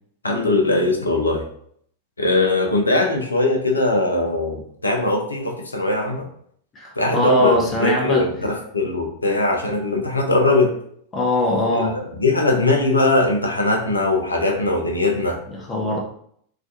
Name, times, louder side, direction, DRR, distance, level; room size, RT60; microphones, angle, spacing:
voice 1, 0.2-1.4 2.2-6.3 7.0-10.8 11.7-11.9 12.2-15.4, left 2 dB, 80° left, 3 dB, 0.4 m, -20 dB
voice 2, 6.8-8.3 11.1-12.0 15.5-16.0, left 1 dB, 25° left, 0 dB, 0.6 m, -21 dB
2.4 x 2.2 x 2.6 m, 0.65 s
figure-of-eight pair, 90°, 0 cm